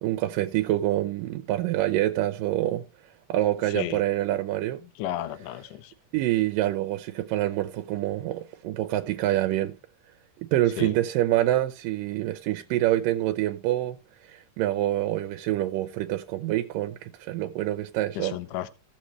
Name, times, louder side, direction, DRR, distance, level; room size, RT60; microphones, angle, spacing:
voice 1, 0.0-2.8 3.3-4.8 6.1-9.8 10.5-14.0 14.2-18.3, right 14 dB, 85° right, 2.3 m, -26 dB
voice 2, 3.7-4.0 5.0-5.9 10.8-11.0 18.2-18.7, left 13 dB, 80° left, 2.2 m, -33 dB
17.0 x 6.5 x 3.1 m
omnidirectional pair, 3.8 m